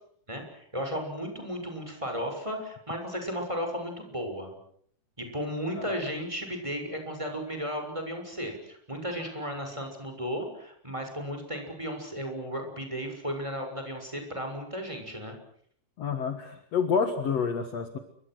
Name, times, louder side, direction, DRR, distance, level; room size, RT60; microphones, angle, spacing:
voice 1, 0.3-4.5 5.3-15.3, equal, 10° right, 4 dB, 6.4 m, -34 dB
voice 2, 16.0-18.0, left 6 dB, 50° left, 8 dB, 2.5 m, -28 dB
29.0 x 25.5 x 6.4 m, 0.64 s
omnidirectional pair, 4.1 m